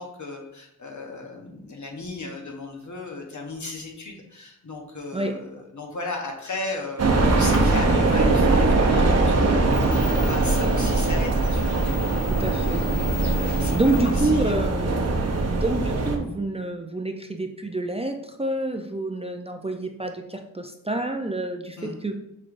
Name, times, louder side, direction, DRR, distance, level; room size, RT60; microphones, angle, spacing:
voice 1, 0.0-11.8 12.4-13.0 13.4-13.8 14.0-14.7 21.8-22.0, left 3 dB, 60° left, 1 dB, 0.9 m, -36 dB
sound 1, 7.0-16.2, right 3 dB, 50° right, 0.7 m, -21 dB
sound 2, 7.4-14.3, left 6 dB, 45° left, 0.4 m, -38 dB
voice 2, 12.4-13.1 13.7-15.1 15.4-22.1, right 2 dB, 20° right, 4 dB, 0.4 m, -28 dB
5.3 x 3.2 x 2.5 m, 0.82 s
wide cardioid pair, 60°, 33 cm